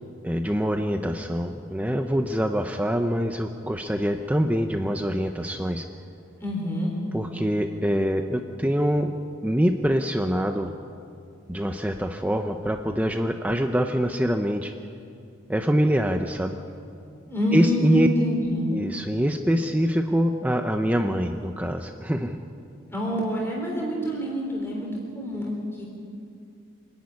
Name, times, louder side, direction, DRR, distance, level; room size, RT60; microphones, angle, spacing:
voice 1, 0.2-5.8 7.1-9.1 9.4-10.7 11.5-14.7 15.5-16.6 17.5-18.1 18.7-22.4, equal, 5° right, 5 dB, 0.6 m, -24 dB
voice 2, 6.4-6.9 17.3-18.7 22.9-24.9 25.1-25.9, equal, 10° left, -2 dB, 3.7 m, -27 dB
26.0 x 10.5 x 9.7 m, 2.5 s
head